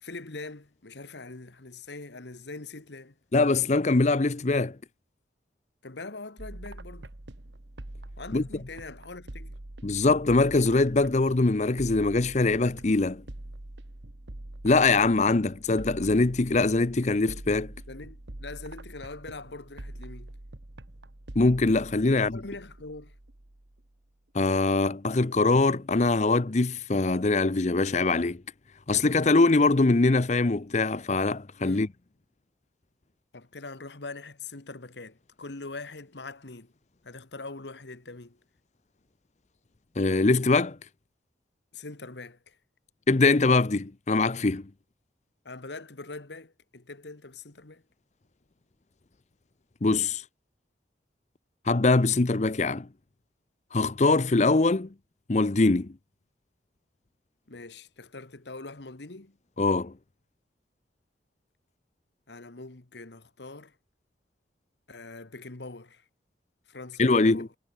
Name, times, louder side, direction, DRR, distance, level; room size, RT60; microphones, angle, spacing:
voice 1, 0.0-3.1 5.8-7.1 8.2-9.6 17.9-20.3 22.1-23.1 31.6-31.9 33.3-36.7 37.0-38.4 41.7-42.6 45.4-47.8 57.5-59.3 62.3-63.7 64.9-66.0 66.7-67.5, left 3 dB, 75° left, 1.5 m, -42 dB
voice 2, 3.3-4.8 8.3-8.4 9.8-13.2 14.6-17.7 21.4-22.4 24.3-28.4 28.9-31.9 40.0-40.8 43.1-44.7 49.8-50.2 51.7-52.9 53.7-54.9 55.3-55.9 59.6-59.9 67.0-67.5, left 3 dB, 40° left, 0.7 m, -23 dB
sound 1, 6.4-24.0, right 1 dB, 85° right, 1.7 m, -44 dB
head